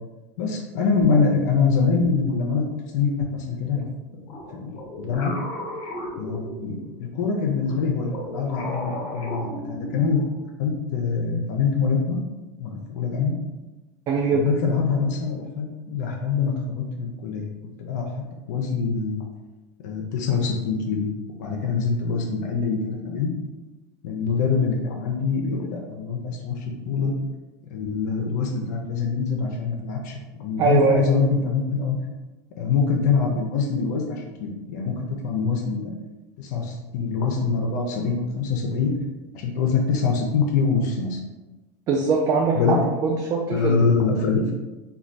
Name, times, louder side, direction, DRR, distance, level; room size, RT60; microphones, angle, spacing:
voice 1, 0.4-2.6 2.9-3.9 4.5-5.3 6.2-12.2 12.6-13.3 14.3-17.5 17.8-18.1 18.5-19.2 19.8-21.1 21.4-23.3 24.0-27.1 27.7-32.0 32.6-35.9 36.4-38.9 39.3-41.2 42.5-42.8 43.5-44.5, left 5 dB, 75° left, 0 dB, 0.5 m, -24 dB
sound 1, 4.3-7.0 7.6-10.3, left 1 dB, 60° left, 1.0 m, -35 dB
voice 2, 14.1-14.5 30.6-31.0 41.9-43.9, right 4 dB, 40° right, 0 dB, 0.4 m, -22 dB
3.1 x 2.2 x 2.5 m, 1.1 s
supercardioid pair, 110°, 9 cm